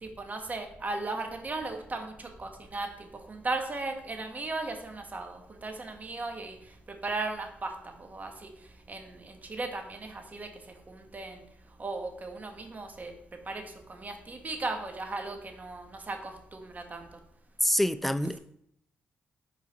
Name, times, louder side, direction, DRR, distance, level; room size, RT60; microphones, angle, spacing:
voice 1, 0.0-6.8 7.0-8.5 8.9-10.5 10.9-11.4 11.8-13.1 13.5-17.2, right 3 dB, 35° right, 4 dB, 1.3 m, -37 dB
voice 2, 17.6-18.4, equal, 5° left, 12 dB, 0.4 m, -26 dB
5.6 x 3.9 x 5.2 m, 0.69 s
supercardioid pair, 60°, 5 cm